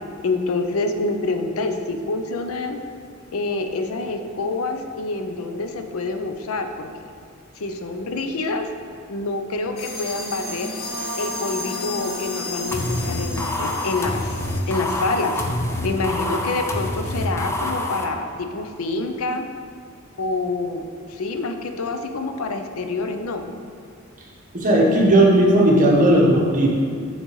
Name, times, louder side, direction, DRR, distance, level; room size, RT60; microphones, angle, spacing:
voice 1, 0.2-2.8 3.3-6.9 7.6-8.7 9.1-10.7 11.2-15.5 15.8-19.4 20.2-23.5, left 3 dB, 80° left, 6 dB, 0.5 m, -27 dB
sound 1, 9.8-16.0, left 2 dB, 50° left, 0.8 m, -33 dB
sound 2, 12.7-18.0, left 1 dB, 15° left, 0.4 m, -26 dB
voice 2, 24.5-26.8, right 1 dB, 40° right, -3 dB, 1.1 m, -16 dB
9.0 x 3.9 x 3.1 m, 2.2 s
head